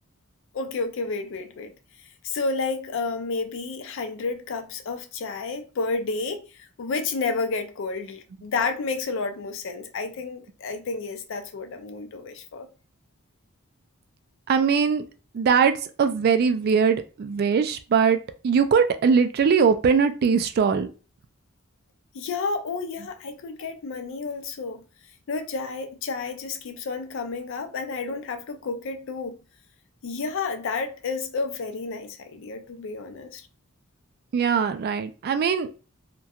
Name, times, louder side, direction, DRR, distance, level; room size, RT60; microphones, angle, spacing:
voice 1, 0.5-1.7 2.2-12.7 22.1-24.8 25.3-29.4 30.0-33.4, left 4 dB, 65° left, 0.4 m, -31 dB
voice 2, 14.5-15.0 15.3-20.9 34.3-35.7, right 6 dB, 50° right, 0.3 m, -21 dB
2.7 x 2.2 x 2.3 m
head